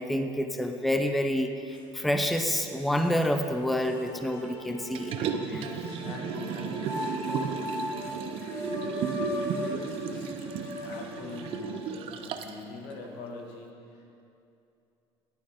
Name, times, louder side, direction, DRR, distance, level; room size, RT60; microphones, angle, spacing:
voice 1, 0.0-5.2 5.5-5.7, equal, ahead, 6 dB, 0.5 m, -28 dB
sound 1, 1.7-1.8 2.3-3.2 3.9-4.0 5.1-6.2 6.8-11.7, left 2 dB, 25° left, 2.1 m, -37 dB
sound 2, 3.6-8.6, equal, 55° left, 1.5 m, -48 dB
Liquid, 4.9-12.6 13.0-13.1, right 6 dB, 55° right, 0.6 m, -34 dB
voice 2, 5.2-7.6 8.1-8.9 9.5-14.2, left 3 dB, 90° left, 0 dB, 1.6 m, -45 dB
11.0 x 8.9 x 3.5 m, 2.6 s
cardioid pair, 120°, 11 cm